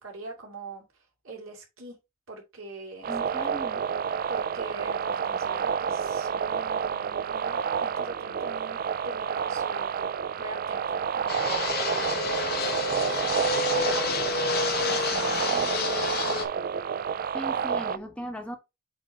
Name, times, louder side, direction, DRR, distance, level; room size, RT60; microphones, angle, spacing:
voice 1, 0.0-0.9 1.2-2.0 2.3-3.4 4.3-10.1 10.4-16.2, right 2 dB, 80° right, 2.6 m, -42 dB
sound 1, 3.0-18.0, right 7 dB, 45° right, 0.4 m, -29 dB
voice 2, 3.1-3.8 17.3-18.6, equal, 5° left, 1.3 m, -37 dB
Fixed-wing aircraft airplane, 11.3-16.5, left 4 dB, 50° left, 1.6 m, -29 dB
8.4 x 3.1 x 4.1 m
head